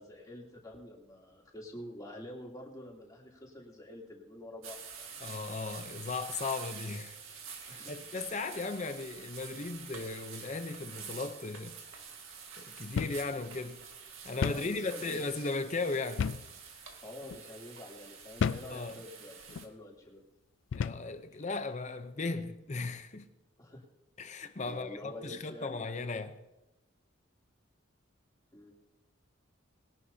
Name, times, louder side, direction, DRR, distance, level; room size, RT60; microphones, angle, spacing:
voice 1, 0.0-5.2 7.7-8.0 14.5-15.2 17.0-20.2 21.3-21.4 23.6-23.8 24.7-25.8 28.5-28.7, left 1 dB, 20° left, 3.0 m, -47 dB
sound 1, 4.6-19.7, right 6 dB, 85° right, 2.0 m, -47 dB
voice 2, 5.2-7.2 7.6-11.8 12.6-13.8 14.2-16.3 18.7-18.9 20.7-23.3 24.2-26.4, left 3 dB, 35° left, 0.7 m, -37 dB
sound 2, 13.0-13.3 13.6-13.7 14.4-14.7 16.2-16.5 17.2-17.4 18.4-18.7 19.5-19.7 20.7-21.1, left 6 dB, 65° left, 0.3 m, -32 dB
21.0 x 11.0 x 2.8 m
head